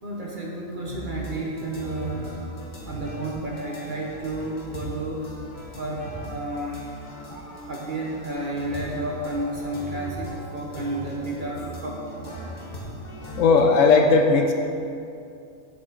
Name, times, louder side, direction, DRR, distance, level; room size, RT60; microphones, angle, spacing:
voice 1, 0.0-5.3 5.8-12.9, right 1 dB, 40° right, -3 dB, 1.0 m, -32 dB
sound 1, 0.8-13.6, right 1 dB, 35° left, 0.9 m, -38 dB
voice 2, 13.4-14.5, left 4 dB, 70° left, 3 dB, 0.9 m, -17 dB
6.9 x 6.6 x 3.8 m, 2.5 s
omnidirectional pair, 1.5 m